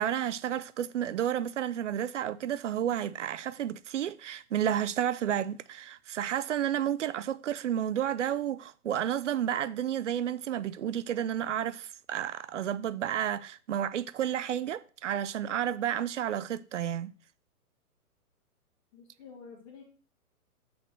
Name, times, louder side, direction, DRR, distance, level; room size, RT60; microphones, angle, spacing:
voice 1, 0.0-17.1, right 10 dB, 55° right, 0.5 m, -31 dB
voice 2, 18.9-19.8, left 5 dB, 25° left, 1.6 m, -49 dB
6.8 x 4.0 x 6.5 m
hypercardioid pair, 135°, 46 cm